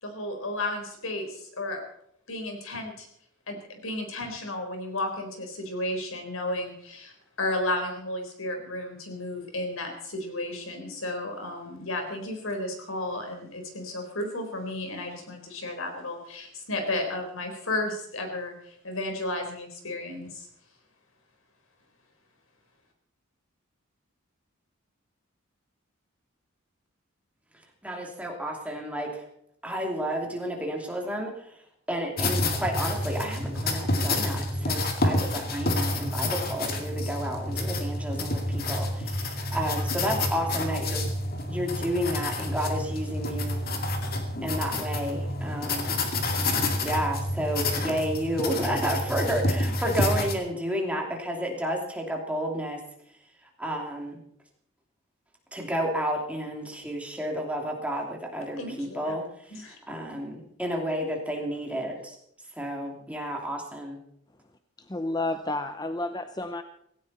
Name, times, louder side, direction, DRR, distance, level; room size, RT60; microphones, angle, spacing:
voice 1, 0.0-1.8 2.3-3.1 3.5-7.1 7.4-20.5 58.6-59.2 59.5-59.8, left 1 dB, 90° left, 4 dB, 4.2 m, -33 dB
voice 2, 27.8-29.2 29.6-31.6 31.9-41.1 41.5-43.6 44.4-46.0 46.8-52.8 53.6-54.2 55.5-62.2 62.6-64.0, equal, 5° right, 1 dB, 2.8 m, -31 dB
sound 1, 32.2-50.3, left 2 dB, 45° left, 2.3 m, -29 dB
voice 3, 64.9-66.6, left 2 dB, 20° left, 9 dB, 0.6 m, -30 dB
17.0 x 16.5 x 4.3 m, 0.73 s
head